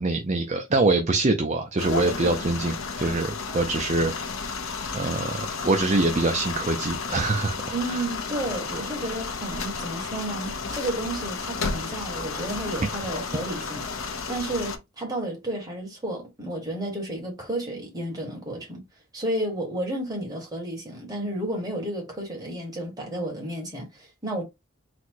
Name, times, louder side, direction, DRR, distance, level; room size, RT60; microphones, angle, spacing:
voice 1, 0.0-4.1 4.9-7.6 7.9-8.0, right 2 dB, 30° right, 0.5 m, -24 dB
sound 1, 1.8-14.8, left 4 dB, 65° left, 0.7 m, -32 dB
voice 2, 7.7-18.8 19.1-24.4, right 1 dB, 15° right, 1.4 m, -32 dB
4.2 x 2.2 x 4.5 m
head